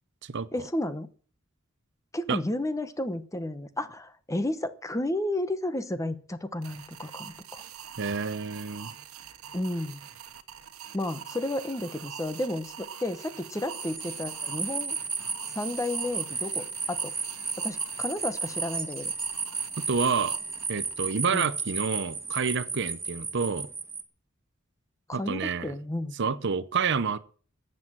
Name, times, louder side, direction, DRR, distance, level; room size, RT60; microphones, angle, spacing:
voice 1, 0.5-1.1 2.1-7.6 9.5-10.0 10.9-15.0 15.5-17.1 17.6-19.1 21.3-21.5 25.1-26.2, left 1 dB, 15° left, 0.9 m, -32 dB
sound 1, 6.6-21.4, right 8 dB, 90° right, 1.2 m, -45 dB
voice 2, 8.0-8.9 19.9-20.4 20.7-23.7 25.1-25.7 26.2-27.2, right 5 dB, 55° right, 0.8 m, -28 dB
sound 2, 13.7-24.0, right 4 dB, 10° right, 1.4 m, -34 dB
13.5 x 7.8 x 7.9 m
head